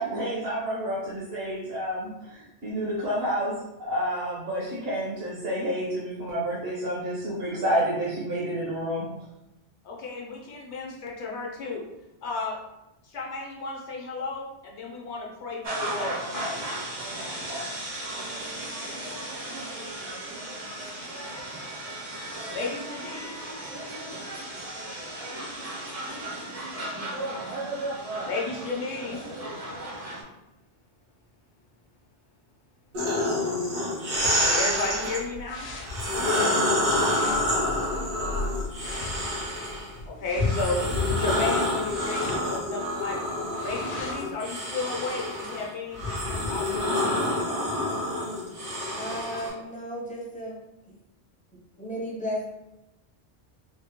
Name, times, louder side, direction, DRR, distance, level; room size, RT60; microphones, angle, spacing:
voice 1, 0.0-9.1, equal, 60° right, -8 dB, 1.1 m, -29 dB
voice 2, 9.8-11.8 12.2-12.6 13.0-16.7 22.5-23.5 28.3-29.3 34.4-35.7 40.1-40.9 41.1-43.2 43.6-47.3, left 3 dB, 80° left, 0 dB, 1.0 m, -33 dB
sound 1, 15.6-30.2, right 1 dB, 45° right, 0.6 m, -35 dB
sound 2, 32.9-35.2 35.8-39.9 40.4-49.5, left 1 dB, 80° right, 1.4 m, -27 dB
sound 3, 34.1-44.3, left 2 dB, 55° left, 0.7 m, -39 dB
voice 3, 49.0-50.6 51.8-52.5, equal, 10° left, -4 dB, 0.5 m, -34 dB
3.4 x 2.1 x 2.8 m, 0.91 s
omnidirectional pair, 1.1 m